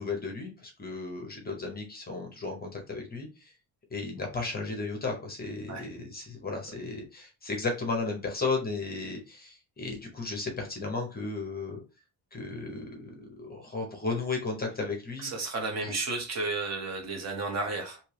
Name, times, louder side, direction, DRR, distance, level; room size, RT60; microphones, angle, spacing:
voice 1, 0.0-3.5 3.9-11.8 12.3-15.3 15.8-15.9, left 3 dB, 20° left, 0.7 m, -34 dB
voice 2, 15.2-18.0, right 3 dB, 35° right, 1.0 m, -32 dB
3.3 x 2.8 x 2.9 m
cardioid pair, 175°, 45 cm